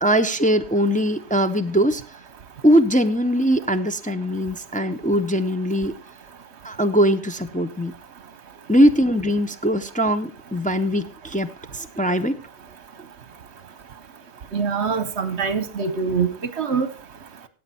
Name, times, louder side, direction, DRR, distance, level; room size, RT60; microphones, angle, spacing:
voice 1, 0.0-2.0 2.6-5.9 6.6-7.9 8.7-12.4, equal, 10° left, 6 dB, 0.4 m, -21 dB
voice 2, 14.5-16.3 16.6-16.9, right 5 dB, 60° right, 14 dB, 1.2 m, -23 dB
15.5 x 8.5 x 4.2 m, 0.37 s
omnidirectional pair, 1.3 m